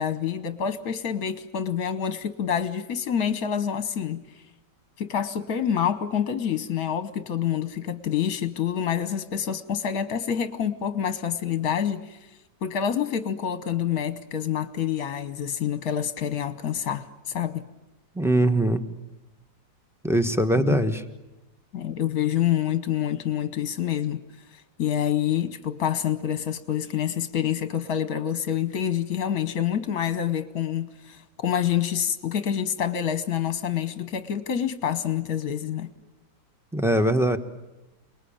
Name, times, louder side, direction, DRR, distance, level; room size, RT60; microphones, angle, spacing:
voice 1, 0.0-4.4 5.0-12.2 12.6-17.7 20.5-20.9 21.7-24.2 24.5-35.9, left 9 dB, 55° left, 12 dB, 1.4 m, -27 dB
voice 2, 18.1-18.8 20.0-21.0 36.7-37.4, right 1 dB, ahead, 6 dB, 1.0 m, -21 dB
29.0 x 20.5 x 8.8 m, 1.0 s
omnidirectional pair, 2.0 m